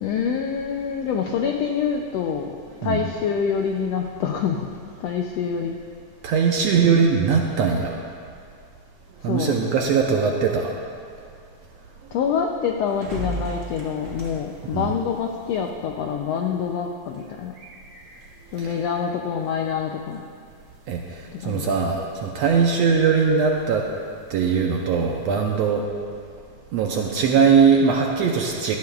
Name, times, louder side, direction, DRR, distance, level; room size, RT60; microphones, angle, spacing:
voice 1, 0.0-2.5 2.8-4.7 5.0-5.8 6.7-7.1 9.3-9.6 12.1-17.5 18.5-20.2 21.3-21.7, left 7 dB, 80° left, 2 dB, 1.4 m, -26 dB
voice 2, 6.2-7.9 9.2-10.7 14.7-14.9 20.9-21.0 21.4-23.9 24.3-25.9 26.7-28.8, right 6 dB, 75° right, 1 dB, 1.6 m, -20 dB
sound 1, 12.9-25.7, right 2 dB, 50° right, 0.9 m, -42 dB
17.5 x 13.5 x 2.4 m, 2.3 s
omnidirectional pair, 3.6 m